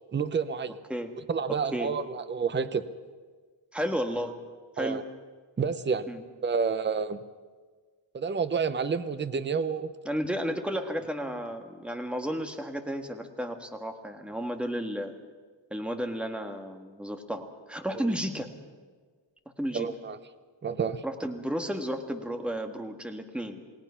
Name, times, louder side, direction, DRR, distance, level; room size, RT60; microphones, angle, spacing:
voice 1, 0.1-0.8 1.3-2.9 4.8-5.0 5.6-6.1 6.4-7.2 8.1-9.9 19.7-20.2 20.6-21.0, right 5 dB, 25° right, 12 dB, 0.8 m, -29 dB
voice 2, 1.5-1.9 3.7-4.3 4.7-5.0 6.1-6.2 10.0-15.1 15.7-18.5 19.6-19.9 21.0-23.6, equal, ahead, 5 dB, 1.6 m, -33 dB
28.5 x 18.5 x 5.7 m, 1.5 s
wide cardioid pair, 175°, 46 cm